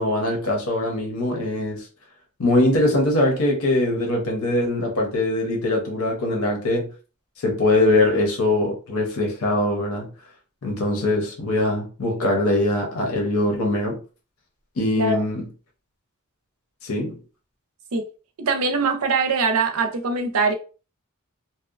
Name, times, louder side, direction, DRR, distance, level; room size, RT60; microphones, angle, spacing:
voice 1, 0.0-1.9 2.4-6.9 7.4-10.1 10.6-14.0 14.8-15.4 16.8-17.2, left 1 dB, 70° left, 0.7 m, -22 dB
voice 2, 18.4-20.5, right 4 dB, 75° right, 0.5 m, -22 dB
2.7 x 2.1 x 2.4 m
head